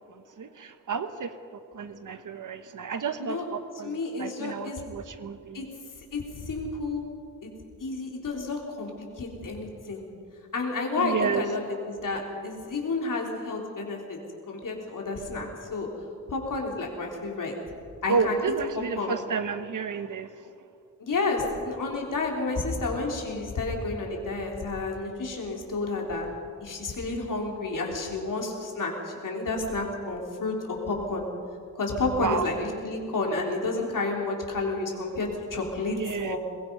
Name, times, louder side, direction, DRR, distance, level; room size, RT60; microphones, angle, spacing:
voice 1, 0.1-1.3 1.7-5.7 11.0-11.4 18.1-20.3 32.2-32.5 35.9-36.4, right 5 dB, 70° right, 10 dB, 1.1 m, -31 dB
voice 2, 3.8-4.8 5.5-5.6 6.1-7.0 7.4-7.5 7.8-8.9 9.2-10.0 10.5-14.2 14.5-15.9 16.3-17.6 18.0-18.4 18.7-19.1 21.0-26.3 26.6-31.3 31.8-36.4, left 3 dB, 75° left, 0 dB, 3.8 m, -30 dB
22.5 x 21.0 x 5.5 m, 2.4 s
wide cardioid pair, 115°, 32 cm